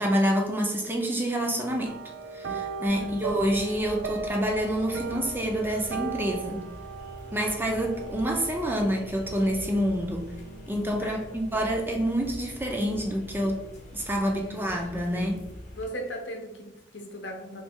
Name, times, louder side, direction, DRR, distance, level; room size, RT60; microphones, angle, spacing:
voice 1, 0.0-2.0 2.3-6.6 7.3-10.3 10.7-13.7 13.9-15.4, equal, 10° right, 0.4 m, -27 dB
sound 1, 1.8-11.4 11.7-12.1 12.4-12.5, right 5 dB, 85° right, 0.4 m, -39 dB
voice 2, 2.8-3.3 11.0-11.6 14.1-15.5 15.7-17.6, equal, 75° left, 0.7 m, -39 dB
sound 2, 2.8-15.8, left 1 dB, 40° left, 0.8 m, -44 dB
3.1 x 3.1 x 3.5 m
head